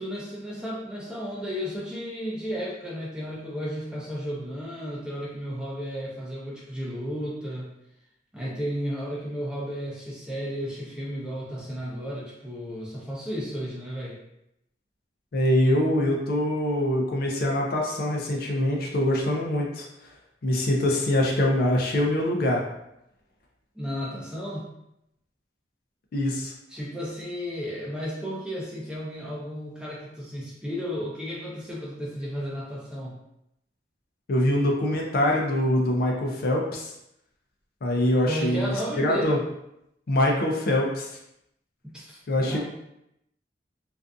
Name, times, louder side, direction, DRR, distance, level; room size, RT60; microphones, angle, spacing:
voice 1, 0.0-7.7 8.3-14.2 23.7-24.7 26.7-33.2 38.3-39.4 41.8-42.6, equal, 5° right, -6 dB, 0.6 m, -33 dB
voice 2, 15.3-19.9 20.4-22.6 26.1-26.5 34.3-36.9 37.8-39.4 40.1-41.1 42.3-42.6, left 1 dB, 55° left, 0 dB, 0.4 m, -24 dB
2.5 x 2.4 x 2.3 m, 0.82 s
head